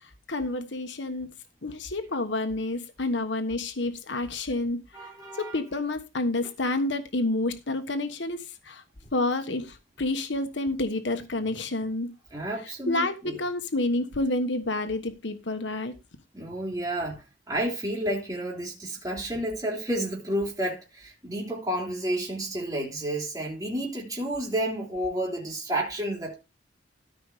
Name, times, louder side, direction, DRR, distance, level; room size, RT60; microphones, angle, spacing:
voice 1, 0.3-1.3 1.6-4.8 5.4-8.8 9.1-12.1 12.9-15.9, left 2 dB, 75° left, 1.3 m, -29 dB
voice 2, 4.9-5.6 12.3-13.4 16.3-26.4, right 1 dB, 20° right, 3.7 m, -31 dB
13.5 x 5.4 x 4.9 m
head